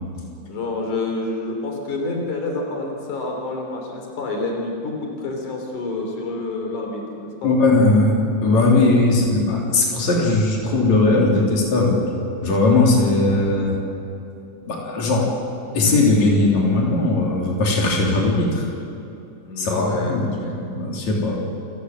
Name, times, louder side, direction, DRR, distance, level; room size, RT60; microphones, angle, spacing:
voice 1, 0.5-7.5 19.4-20.6, left 2 dB, 85° left, 1 dB, 4.6 m, -28 dB
voice 2, 7.4-12.1 12.4-13.8 14.7-15.3 15.7-18.6 19.6-20.3 20.6-21.4, left 2 dB, 65° left, -2 dB, 4.7 m, -18 dB
29.0 x 16.0 x 7.8 m, 2.7 s
omnidirectional pair, 3.4 m